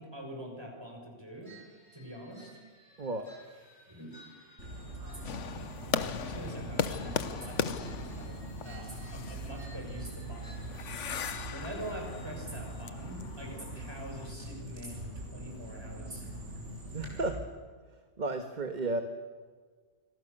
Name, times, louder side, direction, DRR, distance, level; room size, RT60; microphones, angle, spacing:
voice 1, 0.0-1.6 1.9-2.6 3.9-4.2 6.2-10.7 11.5-16.3, equal, 20° right, 1 dB, 6.0 m, -45 dB
sound 1, 1.4-12.8, right 1 dB, 65° left, 6.5 m, -57 dB
sound 2, 4.6-17.3, right 1 dB, 75° right, 7.5 m, -42 dB
sound 3, 5.2-14.3, left 7 dB, 80° left, 1.3 m, -38 dB
voice 2, 16.9-17.4 18.2-19.0, right 2 dB, 40° right, 6 dB, 1.5 m, -33 dB
27.5 x 25.0 x 6.8 m, 1.5 s
omnidirectional pair, 1.2 m